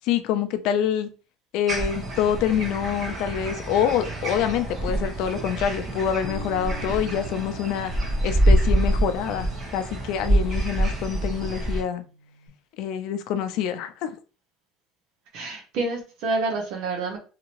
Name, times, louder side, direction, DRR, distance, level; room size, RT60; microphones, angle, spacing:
voice 1, 0.0-1.1 1.5-7.9 8.2-12.0 12.8-14.1, left 9 dB, 60° left, 9 dB, 0.5 m, -26 dB
sound 1, 1.7-11.8, right 1 dB, 25° right, 1.1 m, -26 dB
Bass guitar, 6.2-12.5, left 1 dB, 30° left, 0.7 m, -44 dB
voice 2, 15.3-17.2, right 3 dB, 65° right, 1 dB, 0.9 m, -28 dB
2.8 x 2.7 x 2.9 m, 0.36 s
cardioid pair, 150°, 0 cm